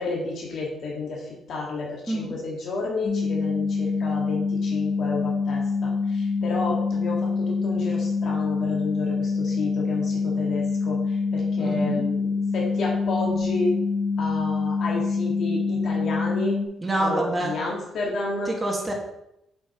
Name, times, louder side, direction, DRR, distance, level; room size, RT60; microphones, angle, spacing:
voice 1, 0.0-12.3 12.5-13.7 14.2-16.6 17.0-18.5, left 3 dB, 65° left, -3 dB, 2.2 m, -31 dB
voice 2, 2.1-2.4 11.6-12.1 16.8-17.5 18.5-18.9, right 1 dB, 15° right, -1 dB, 2.1 m, -27 dB
sound 1, 3.0-16.7, left 4 dB, 45° left, 1.4 m, -25 dB
8.0 x 5.8 x 3.2 m, 0.82 s
cardioid pair, 90°, 0 cm